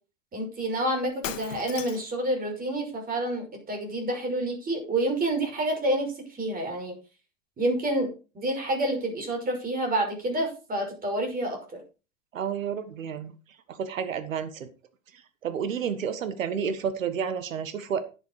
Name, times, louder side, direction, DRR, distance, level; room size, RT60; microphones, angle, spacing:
voice 1, 0.3-6.9 7.6-11.8, right 1 dB, 20° right, 2 dB, 5.9 m, -28 dB
Shatter, 1.2-2.2, left 10 dB, 70° left, 1.4 m, -37 dB
voice 2, 12.3-13.3 13.7-14.7 15.1-18.0, right 7 dB, 80° right, 11 dB, 1.5 m, -31 dB
11.0 x 7.8 x 4.7 m, 0.32 s
hypercardioid pair, 105°, 39 cm